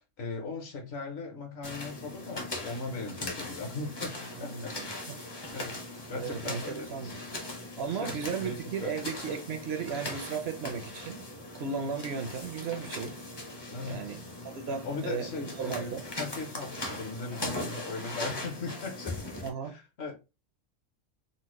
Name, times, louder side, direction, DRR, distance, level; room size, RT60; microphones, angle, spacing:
voice 1, 0.2-5.8 6.1-7.2 7.7-8.1 8.4-8.9 13.7-14.1 14.8-15.9 16.2-20.1, left 3 dB, 60° left, 1.0 m, -39 dB
sound 1, 1.6-19.5, left 2 dB, 25° left, 0.6 m, -40 dB
voice 2, 4.4-5.2 6.1-7.1 7.8-11.2 11.5-13.2 13.9-14.2 14.6-16.0 19.4-19.7, right 6 dB, 65° right, 0.7 m, -35 dB
4.0 x 2.1 x 3.0 m
omnidirectional pair, 1.3 m